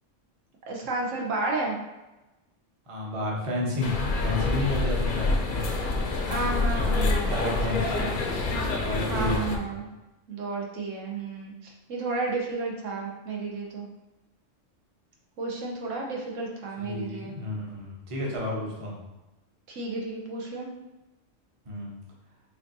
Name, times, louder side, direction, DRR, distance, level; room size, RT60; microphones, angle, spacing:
voice 1, 0.7-1.8 6.3-8.2 9.0-9.9 10.3-13.9 15.4-17.3 19.7-20.7, right 3 dB, 80° right, -1 dB, 1.1 m, -32 dB
voice 2, 2.9-3.9 4.2-5.7 6.9-9.6 16.8-19.0 21.7-22.0, left 2 dB, 30° right, -3 dB, 0.7 m, -32 dB
sound 1, 3.8-9.6, left 3 dB, 60° left, 0.6 m, -27 dB
4.4 x 2.7 x 2.6 m, 1.0 s
omnidirectional pair, 1.3 m